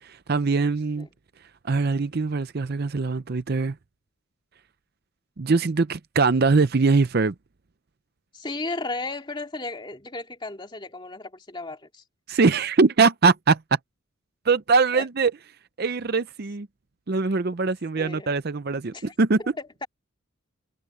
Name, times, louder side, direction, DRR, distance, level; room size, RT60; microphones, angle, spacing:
voice 1, 0.0-1.1 1.6-3.8 5.4-7.3 12.3-13.8 14.5-15.3 15.8-16.7 17.1-19.4, right 4 dB, 50° right, 0.6 m, -22 dB
voice 2, 0.6-1.1 8.3-12.0 14.9-15.1 18.0-18.3 18.9-19.1 19.6-19.9, left 2 dB, 20° left, 2.5 m, -35 dB
head